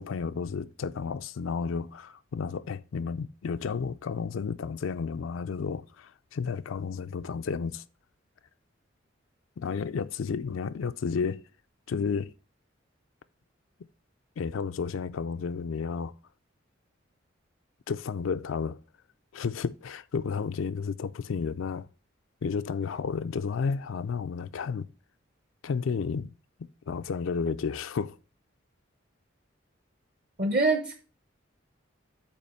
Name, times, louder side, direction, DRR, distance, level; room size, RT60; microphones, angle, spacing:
voice 1, 0.0-7.8 9.6-11.4 11.9-12.3 14.4-16.1 17.9-18.8 19.3-21.9 22.4-24.9 25.6-26.3 26.9-28.2, left 5 dB, 80° left, 0.4 m, -32 dB
voice 2, 30.4-30.9, right 3 dB, 45° right, 0.8 m, -24 dB
8.5 x 3.0 x 6.4 m
head